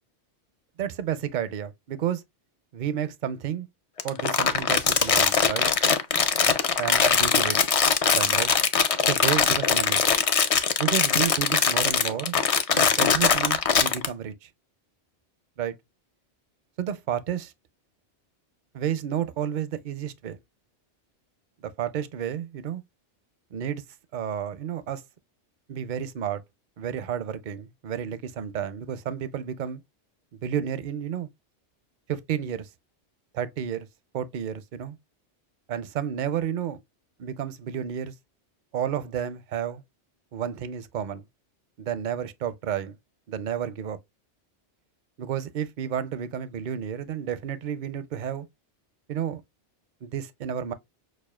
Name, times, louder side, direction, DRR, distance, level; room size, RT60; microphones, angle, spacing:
voice 1, 0.8-2.2 2.7-3.7 4.0-5.7 6.8-7.6 8.1-8.5 9.1-10.0 10.8-12.4 12.7-14.5 15.6-15.7 16.8-17.5 18.7-20.4 21.6-22.8 23.5-23.8 24.1-25.0 25.7-26.4 26.8-29.8 30.4-31.3 32.1-32.7 33.3-33.9 34.1-35.0 35.7-36.8 37.2-38.1 38.7-39.8 40.3-41.2 41.8-43.0 43.3-44.0 45.2-48.5 49.1-49.4 50.0-50.7, right 9 dB, 55° right, 0.5 m, -31 dB
Crumpling crinkling, 4.0-14.1, left 6 dB, 55° left, 0.4 m, -22 dB
6.3 x 2.4 x 2.3 m
omnidirectional pair, 1.2 m